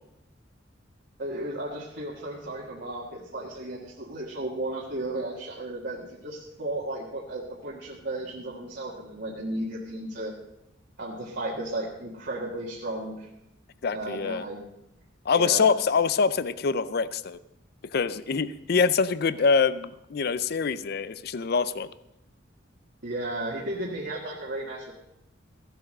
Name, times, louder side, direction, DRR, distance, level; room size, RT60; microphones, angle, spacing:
voice 1, 1.2-10.3 11.0-13.3 13.9-14.6 15.4-15.7 23.0-24.9, right 1 dB, 55° right, -4 dB, 1.7 m, -34 dB
voice 2, 13.8-14.5 15.3-17.4 17.9-21.9, left 5 dB, 50° left, 16 dB, 0.5 m, -25 dB
15.5 x 7.8 x 6.5 m, 0.87 s
head